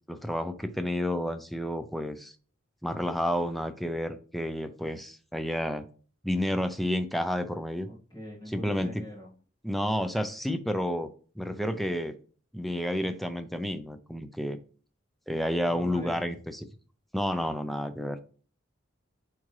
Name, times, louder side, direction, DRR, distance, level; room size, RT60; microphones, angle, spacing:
voice 1, 0.1-2.3 2.8-5.9 6.2-7.9 8.5-9.0 9.6-11.1 11.4-12.1 12.5-14.6 15.3-16.6 17.1-18.2, equal, ahead, 0.4 m, -30 dB
voice 2, 7.8-9.4 15.6-16.3, equal, 20° left, 1.8 m, -43 dB
8.3 x 3.7 x 3.2 m
head